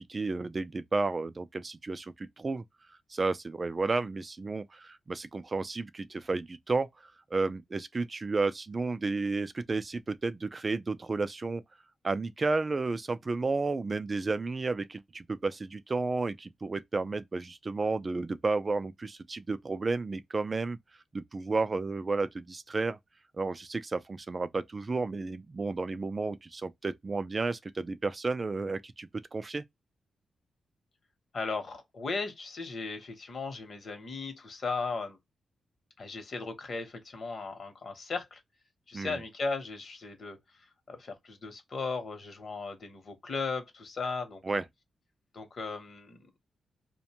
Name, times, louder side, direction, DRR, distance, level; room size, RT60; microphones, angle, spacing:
voice 1, 0.1-2.6 3.1-6.9 7.3-11.6 12.0-20.8 21.1-23.0 23.4-29.6 38.9-39.2 44.4-44.6, right 3 dB, 30° right, 0.3 m, -32 dB
voice 2, 31.3-35.2 36.0-38.4 38.9-40.4 40.9-44.6 45.3-46.3, left 4 dB, 50° left, 0.9 m, -36 dB
2.5 x 2.1 x 2.8 m
wide cardioid pair, 120°, 0 cm